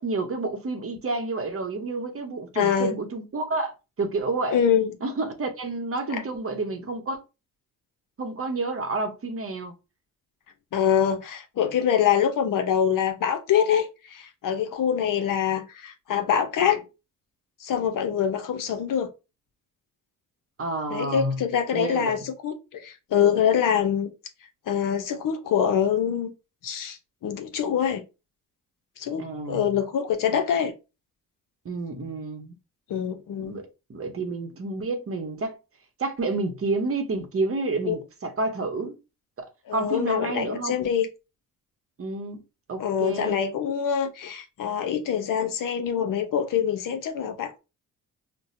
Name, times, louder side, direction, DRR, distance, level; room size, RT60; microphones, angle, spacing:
voice 1, 0.0-4.6 5.0-7.2 8.2-9.7 20.6-21.4 21.7-22.3 29.2-29.7 31.6-32.5 33.5-35.6 36.0-39.0 39.4-39.5 39.7-40.9 42.0-42.4 42.7-43.4, right 3 dB, 35° right, 0.9 m, -29 dB
voice 2, 2.6-2.9 4.5-4.9 6.1-6.2 10.7-16.8 17.6-19.1 20.9-24.1 24.7-26.3 26.6-27.0 27.2-28.0 29.0-30.7 32.9-33.6 37.9-38.0 39.7-41.1 42.8-47.6, left 8 dB, 60° left, 0.7 m, -25 dB
4.0 x 2.2 x 2.6 m
supercardioid pair, 65°, 37 cm